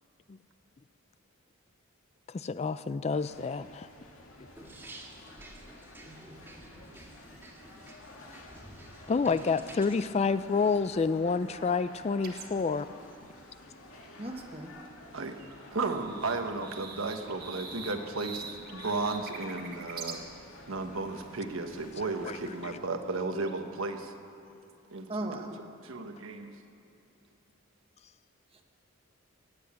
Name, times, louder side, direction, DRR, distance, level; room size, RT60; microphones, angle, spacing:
voice 1, 2.3-3.9 9.1-12.9 22.2-22.4, left 4 dB, 30° left, 13 dB, 0.3 m, -28 dB
sound 1, 3.1-22.8, left 2 dB, 90° left, 2.1 m, -51 dB
sound 2, 4.6-10.0, right 1 dB, 10° right, 1.9 m, -50 dB
sound 3, 12.2-12.6 14.9-15.0 15.2-20.2 22.8-23.5, right 5 dB, 50° right, 1.6 m, -43 dB
voice 2, 14.2-14.7 25.1-25.6 28.5-28.6, right 1 dB, 30° right, 3 dB, 1.3 m, -37 dB
voice 3, 15.7-18.5 18.7-20.2 20.7-24.1 24.9-25.4 25.8-26.5, right 3 dB, 75° right, 5 dB, 1.2 m, -34 dB
17.5 x 8.0 x 8.6 m, 2.8 s
head